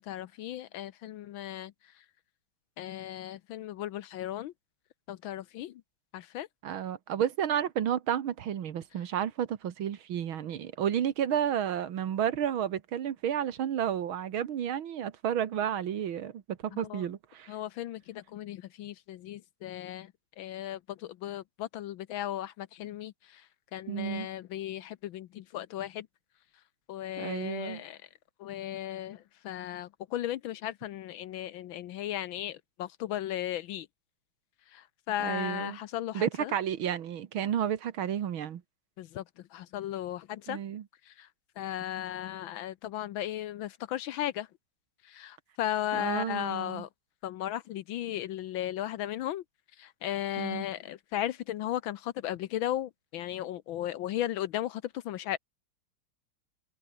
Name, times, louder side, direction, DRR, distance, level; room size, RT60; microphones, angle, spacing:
voice 1, 0.0-2.0 2.8-4.5 5.1-5.8 6.1-6.5 16.7-17.1 17.5-26.1 26.9-28.1 28.4-33.9 34.7-36.5 39.0-40.6 41.0-41.3 41.6-44.5 45.0-46.9 47.2-49.4 49.8-55.4, left 12 dB, 70° left, 1.4 m, -36 dB
voice 2, 6.6-17.5 23.9-24.3 27.2-27.8 35.2-35.8 36.1-38.6 40.5-40.8 45.9-46.8 50.4-50.6, right 9 dB, 70° right, 2.1 m, -31 dB
omnidirectional pair, 2.4 m